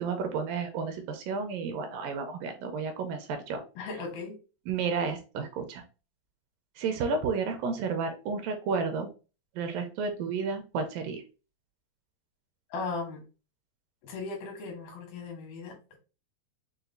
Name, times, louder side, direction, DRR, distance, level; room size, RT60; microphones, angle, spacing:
voice 1, 0.0-3.6 4.7-5.8 6.8-9.1 9.6-11.2, right 5 dB, 80° right, 5 dB, 2.3 m, -31 dB
voice 2, 3.8-4.4 12.7-13.2 14.0-16.0, left 3 dB, 80° left, 1 dB, 3.0 m, -37 dB
6.7 x 2.4 x 2.6 m, 0.33 s
omnidirectional pair, 4.1 m